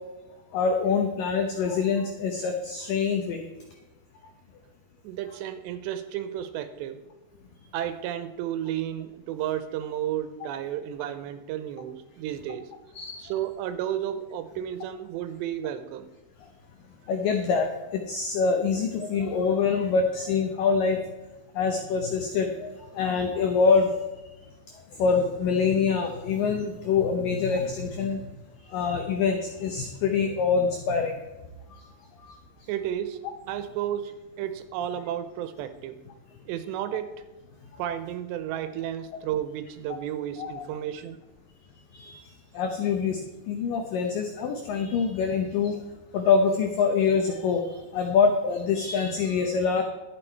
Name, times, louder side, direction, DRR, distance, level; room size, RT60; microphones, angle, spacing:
voice 1, 0.5-3.4 10.4-10.5 12.9-13.2 17.1-17.7 17.9-21.0 21.6-24.0 25.0-28.2 28.7-31.1 40.4-40.7 41.9-42.2 42.5-43.2 43.5-45.8 46.1-47.6 47.9-49.8, left 5 dB, 90° left, 4 dB, 1.9 m, -25 dB
voice 2, 5.0-7.0 7.7-12.7 13.2-16.1 32.7-33.2 33.5-36.0 36.5-37.1 37.8-41.2, right 11 dB, 80° right, 11 dB, 2.7 m, -32 dB
12.0 x 8.5 x 4.5 m, 1.1 s
omnidirectional pair, 5.2 m